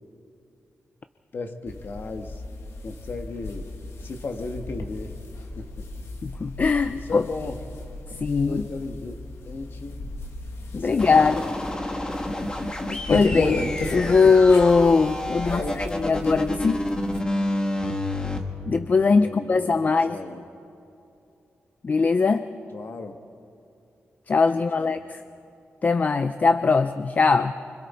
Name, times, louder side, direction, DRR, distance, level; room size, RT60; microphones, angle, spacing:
voice 1, 1.3-2.4 2.8-3.7 4.0-5.1 5.6-5.9 6.8-7.6 8.5-9.2 9.4-10.0 10.7-11.6 15.5-16.1 19.0-20.4 22.7-23.2 24.5-25.0, left 3 dB, 55° left, 6 dB, 1.6 m, -35 dB
sound 1, 1.7-17.2, left 2 dB, 80° left, 1.9 m, -34 dB
voice 2, 6.2-7.2 8.2-8.7 10.7-11.4 12.9-13.6 13.9-16.8 18.7-20.2 21.8-22.5 24.3-25.2 25.8-27.5, left 4 dB, 40° left, 10 dB, 0.5 m, -20 dB
sound 2, 11.0-18.4, left 1 dB, 20° left, 1.5 m, -29 dB
25.0 x 25.0 x 4.4 m, 2.8 s
wide cardioid pair, 125°, 4 cm